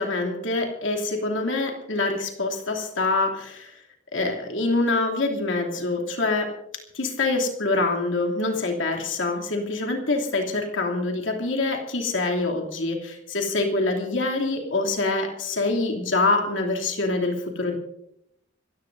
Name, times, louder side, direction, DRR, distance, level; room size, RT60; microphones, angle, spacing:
voice 1, 0.0-3.7 4.1-6.5 6.9-17.7, left 3 dB, 70° left, 1 dB, 2.9 m, -25 dB
26.5 x 15.5 x 2.7 m, 0.77 s
head